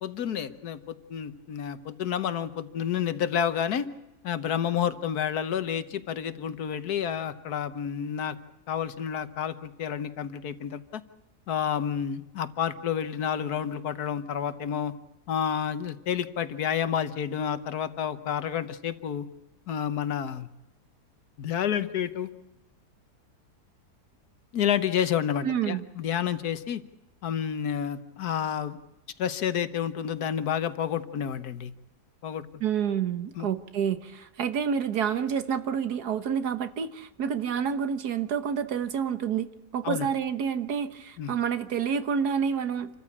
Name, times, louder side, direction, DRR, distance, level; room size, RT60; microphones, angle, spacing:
voice 1, 0.0-3.9 4.2-8.4 8.7-11.0 11.5-14.9 15.3-19.3 19.7-20.5 21.4-22.3 24.5-26.8 27.2-28.8 29.2-31.7 32.2-32.5 33.4-33.5 39.8-40.1 41.2-41.3, left 8 dB, 65° left, 12 dB, 1.6 m, -29 dB
voice 2, 25.4-25.9 32.6-42.9, right 7 dB, 70° right, 11 dB, 1.7 m, -28 dB
28.0 x 14.0 x 8.6 m, 0.99 s
omnidirectional pair, 1.8 m